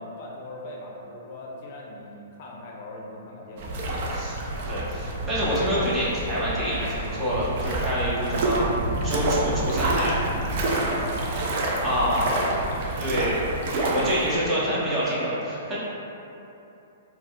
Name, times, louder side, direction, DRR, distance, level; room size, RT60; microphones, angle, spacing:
voice 1, 0.0-4.3 9.0-9.4 10.7-12.7, left 1 dB, 50° left, -2 dB, 0.5 m, -40 dB
sound 1, 3.6-14.4, right 2 dB, 50° right, 0.4 m, -28 dB
voice 2, 4.7-8.6 9.0-10.1 11.8-12.2 13.0-13.4 13.7-15.8, equal, 15° right, -9 dB, 0.8 m, -27 dB
4.1 x 2.1 x 2.2 m, 2.9 s
hypercardioid pair, 135°, 0 cm